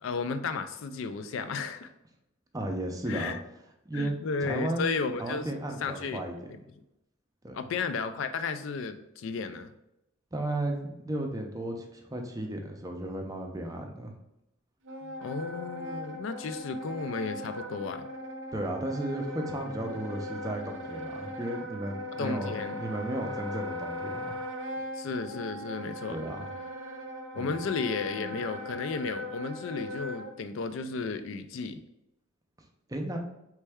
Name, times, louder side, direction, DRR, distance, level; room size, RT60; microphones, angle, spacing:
voice 1, 0.0-1.9 3.1-3.4 3.9-5.5 5.8-6.2 6.5-6.6 7.5-9.7 15.0-18.1 22.2-22.8 25.0-26.2 27.3-31.8, left 4 dB, 65° left, 9 dB, 0.4 m, -33 dB
voice 2, 2.5-3.3 3.9-4.9 5.2-6.3 7.4-7.7 10.3-14.1 18.5-22.5 22.8-24.4 26.1-26.5 27.3-27.6 32.9-33.2, right 1 dB, 15° right, 3 dB, 0.5 m, -34 dB
Wind instrument woodwind instrument, 14.8-30.3, left 1 dB, 65° right, 0.6 m, -39 dB
4.2 x 3.3 x 3.4 m, 0.87 s
head